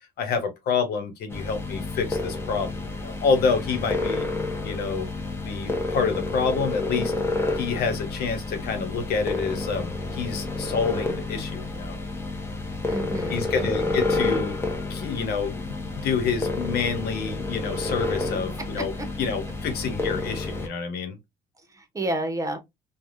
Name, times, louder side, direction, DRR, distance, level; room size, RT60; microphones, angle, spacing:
voice 1, 0.2-4.3 4.6-5.1 5.4-7.1 7.5-12.0 13.3-14.6 14.9-18.9 19.2-21.2, left 5 dB, 70° left, 1.0 m, -28 dB
sound 1, 1.3-20.7, left 2 dB, 15° left, 0.9 m, -30 dB
voice 2, 12.9-14.0 19.0-19.1 21.7-22.6, right 1 dB, 20° right, 1.0 m, -31 dB
3.3 x 2.3 x 2.6 m
cardioid pair, 110°, 17 cm